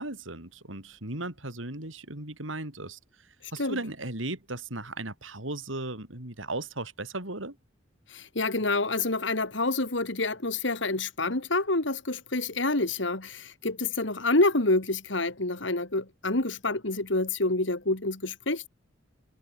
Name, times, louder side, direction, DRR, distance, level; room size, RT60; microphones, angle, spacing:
voice 1, 0.0-7.6, right 2 dB, 90° right, 5.2 m, -36 dB
voice 2, 3.4-3.8 8.1-18.7, left 2 dB, 75° left, 2.7 m, -27 dB
head